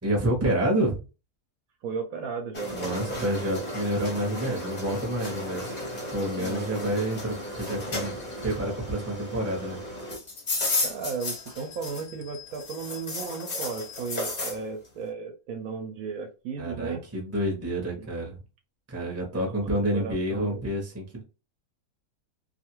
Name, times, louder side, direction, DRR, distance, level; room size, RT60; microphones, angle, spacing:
voice 1, 0.0-1.0 2.7-5.7 6.1-8.1 8.4-9.8 16.6-18.4 18.9-21.2, right 1 dB, 15° right, 0 dB, 0.6 m, -28 dB
voice 2, 1.8-2.8 6.4-6.9 10.8-17.0 17.9-18.1 19.4-20.6, right 5 dB, 70° right, 5 dB, 0.9 m, -35 dB
sound 1, 2.5-12.2 12.5-14.6, left 2 dB, 35° left, 0.7 m, -34 dB
sound 2, 11.0-14.4, left 10 dB, 65° left, 0.9 m, -48 dB
2.6 x 2.4 x 2.9 m, 0.31 s
omnidirectional pair, 1.7 m